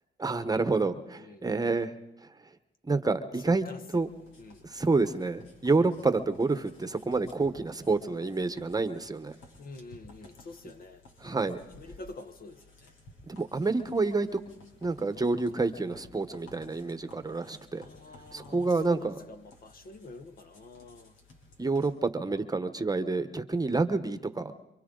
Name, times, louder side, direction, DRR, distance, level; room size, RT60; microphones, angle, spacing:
voice 1, 0.2-1.9 2.9-3.6 3.9-4.1 4.6-9.3 11.2-11.6 13.3-14.4 14.8-17.9 18.3-19.2 21.6-24.5, right 3 dB, 20° right, 1.1 m, -28 dB
voice 2, 1.2-1.7 3.6-3.8 4.4-4.6 9.6-11.5 11.8-12.9 17.8-21.1, left 2 dB, 45° left, 1.3 m, -47 dB
sound 1, 3.9-21.9, left 1 dB, 85° left, 3.7 m, -56 dB
27.5 x 24.5 x 3.9 m
cardioid pair, 90°, 20 cm